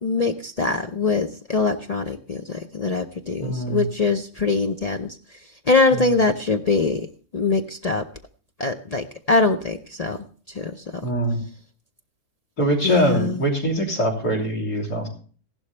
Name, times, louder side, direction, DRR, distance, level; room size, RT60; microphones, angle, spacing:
voice 1, 0.0-7.1 7.3-8.0 8.6-11.1 12.8-13.4, left 3 dB, 55° left, 6 dB, 0.4 m, -23 dB
voice 2, 3.4-3.8 6.0-6.1 11.0-11.4 12.6-15.1, right 1 dB, 90° left, 3 dB, 3.7 m, -23 dB
15.5 x 12.0 x 3.2 m, 0.41 s
omnidirectional pair, 1.6 m